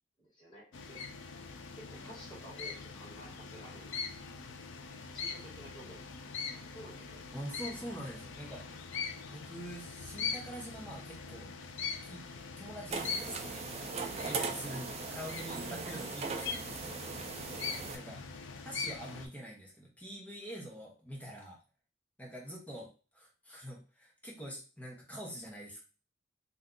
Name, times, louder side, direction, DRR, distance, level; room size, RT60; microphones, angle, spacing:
voice 1, 0.2-1.0 1.7-4.0 4.2-4.4 5.1-6.1 6.7-7.2 14.2-14.7 17.5-18.0, equal, 25° left, -6 dB, 1.5 m, -52 dB
sound 1, 0.7-19.3, left 5 dB, 85° left, 0.5 m, -42 dB
voice 2, 7.3-8.7 9.3-11.5 12.0-13.6 14.2-17.0 17.9-18.2 18.6-21.6 22.2-25.8, equal, 10° left, -3 dB, 0.8 m, -45 dB
sound 2, 12.9-18.0, right 4 dB, 35° right, 0.3 m, -39 dB
2.7 x 2.3 x 3.7 m, 0.35 s
head